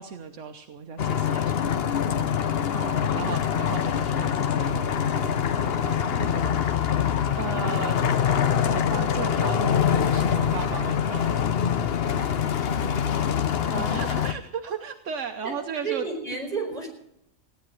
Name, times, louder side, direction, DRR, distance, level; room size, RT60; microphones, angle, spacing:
voice 1, 0.0-2.0 2.9-8.0 8.5-11.6 13.9-16.0, right 6 dB, 80° right, 6 dB, 1.2 m, -36 dB
sound 1, 1.0-14.3, left 8 dB, 55° left, 1.0 m, -24 dB
voice 2, 2.7-3.3 12.2-12.3 13.7-14.0 15.4-15.5 15.8-16.9, right 4 dB, 30° right, 1 dB, 4.9 m, -33 dB
16.0 x 10.5 x 7.6 m, 0.78 s
omnidirectional pair, 1.3 m